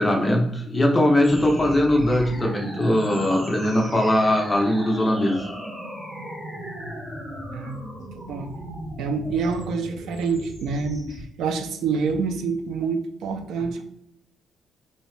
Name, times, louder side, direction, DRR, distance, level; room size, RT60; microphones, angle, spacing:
voice 1, 0.0-5.4, left 1 dB, 15° left, 0 dB, 0.6 m, -20 dB
sound 1, 1.2-11.2, equal, 15° right, 1.0 m, -37 dB
voice 2, 7.5-8.5 9.0-13.8, right 5 dB, 90° right, 8 dB, 0.4 m, -27 dB
3.0 x 2.7 x 3.2 m, 0.80 s
cardioid pair, 175°, 0 cm